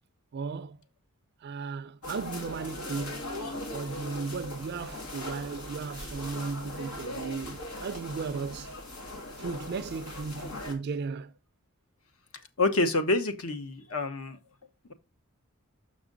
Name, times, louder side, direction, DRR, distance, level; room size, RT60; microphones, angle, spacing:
voice 1, 0.3-0.8 1.4-3.3 3.7-8.7 9.4-11.3, right 5 dB, 45° right, 0.3 m, -36 dB
sound 1, 2.0-10.7, left 1 dB, 90° left, 2.0 m, -39 dB
voice 2, 12.6-14.4, left 2 dB, 70° left, 1.0 m, -27 dB
6.3 x 6.0 x 3.7 m
head